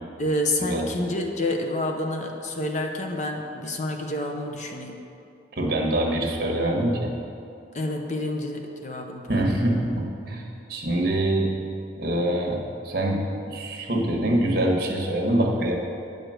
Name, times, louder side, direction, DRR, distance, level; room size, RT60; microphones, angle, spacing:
voice 1, 0.2-5.0 7.7-9.4, left 1 dB, 40° left, 3 dB, 0.8 m, -28 dB
voice 2, 5.6-7.1 9.3-10.4 10.7-11.5 12.0-15.8, right 1 dB, 55° right, 0 dB, 1.4 m, -24 dB
9.3 x 5.0 x 7.6 m, 2.7 s
head